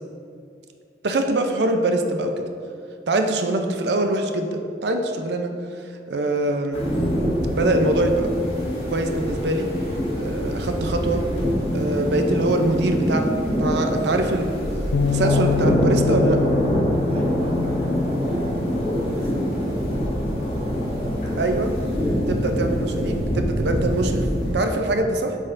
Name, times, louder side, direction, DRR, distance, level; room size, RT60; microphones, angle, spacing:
voice 1, 1.0-2.4 3.1-5.5 6.1-6.8 7.5-8.4 8.9-9.7 10.2-11.3 11.7-16.4 21.4-21.7 22.3-24.3 24.5-25.4, right 2 dB, 70° right, 5 dB, 0.5 m, -23 dB
sound 1, 6.7-24.5, equal, 35° left, 1.6 m, -24 dB
Bass guitar, 14.9-19.3 20.0-21.2, left 5 dB, 85° left, 0.3 m, -27 dB
voice 2, 17.1-21.8, equal, 35° right, 1 dB, 0.8 m, -38 dB
8.0 x 6.4 x 2.6 m, 2.4 s
head